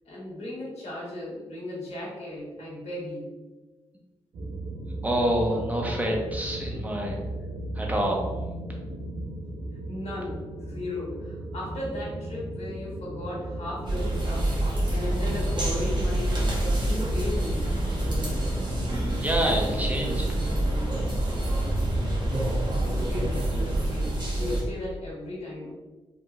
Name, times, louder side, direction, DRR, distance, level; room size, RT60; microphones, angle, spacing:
voice 1, 0.0-3.3 9.9-14.5 14.9-16.4 16.8-17.7 22.8-25.8, left 1 dB, 80° left, -5 dB, 1.2 m, -36 dB
sound 1, 4.3-24.2, right 1 dB, 70° right, 0.6 m, -37 dB
voice 2, 5.0-7.2 7.7-8.6 19.2-20.4, right 1 dB, 15° right, -1 dB, 0.9 m, -27 dB
sound 2, 13.9-24.6, right 1 dB, 45° right, 1.1 m, -27 dB
3.5 x 2.7 x 2.3 m, 1.2 s
cardioid pair, 50°, 11 cm